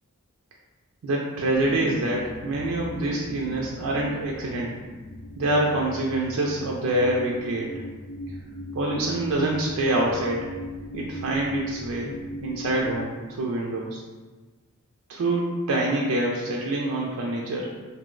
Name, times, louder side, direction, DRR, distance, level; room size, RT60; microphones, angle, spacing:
voice 1, 1.0-4.7 5.4-7.7 8.7-10.5 10.9-12.1 12.4-14.0 15.1-17.7, right 1 dB, 85° right, -2 dB, 0.4 m, -26 dB
sound 1, 1.5-13.0, left 1 dB, 85° left, 0.5 m, -38 dB
2.6 x 2.0 x 3.7 m, 1.3 s
head